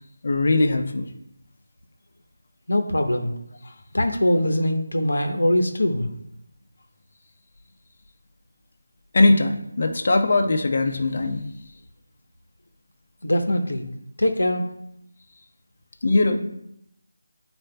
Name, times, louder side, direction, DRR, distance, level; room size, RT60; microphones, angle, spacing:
voice 1, 0.2-1.1 9.1-11.4 16.0-16.4, left 2 dB, 50° left, 4 dB, 0.9 m, -20 dB
voice 2, 2.7-3.3 3.9-6.1 13.2-13.9 14.2-14.6, left 1 dB, 85° left, 4 dB, 0.9 m, -22 dB
9.7 x 4.4 x 2.3 m, 0.79 s
figure-of-eight pair, 165°, 0 cm